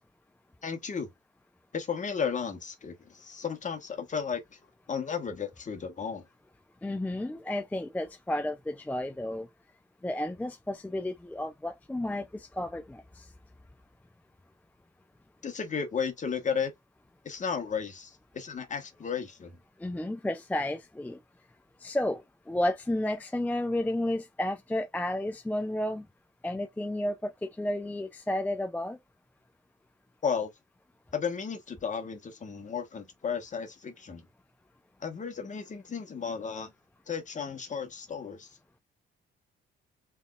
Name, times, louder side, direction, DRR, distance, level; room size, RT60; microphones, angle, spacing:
voice 1, 0.6-1.1 1.7-4.4 4.9-6.2 15.4-16.7 17.2-19.5 30.2-30.5 31.1-34.2 35.0-36.7 37.1-38.5, left 6 dB, 40° left, 1.3 m, -34 dB
voice 2, 6.8-9.5 10.0-13.3 19.8-21.2 21.8-26.0 26.4-29.0, left 1 dB, 10° left, 0.4 m, -32 dB
3.5 x 3.5 x 2.4 m
cardioid pair, 90°, 20 cm